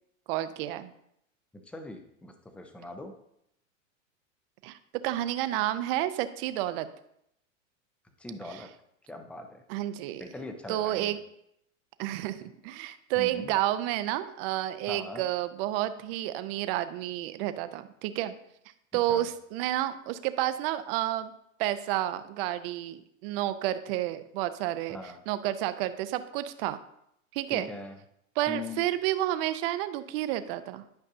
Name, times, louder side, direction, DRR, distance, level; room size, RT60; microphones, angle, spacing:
voice 1, 0.3-0.9 4.6-4.8 5.0-6.9 8.5-8.6 9.7-10.2 10.7-11.2 12.0-18.3 18.9-21.3 21.6-25.0 25.3-26.8 27.3-27.7 28.4-30.8, right 14 dB, 45° right, 12 dB, 0.6 m, -30 dB
voice 2, 1.5-3.1 8.2-8.7 9.1-9.6 10.2-11.2 13.2-13.5 14.9-15.2 18.9-19.3 24.9-25.2 27.5-28.0 28.5-28.8, left 2 dB, 5° left, 6 dB, 0.5 m, -41 dB
11.5 x 5.3 x 2.6 m, 0.75 s
hypercardioid pair, 120°, 40 cm